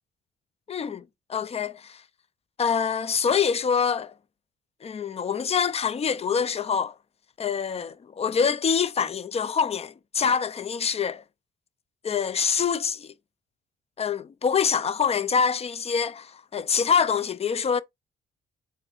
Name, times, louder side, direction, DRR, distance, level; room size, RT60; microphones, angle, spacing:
voice 1, 0.7-1.0 1.3-2.0 2.6-4.1 4.8-6.9 7.4-11.2 12.0-13.1 14.0-17.8, left 6 dB, 30° left, 0.4 m, -25 dB
4.4 x 3.3 x 3.3 m
cardioid pair, 90°, 20 cm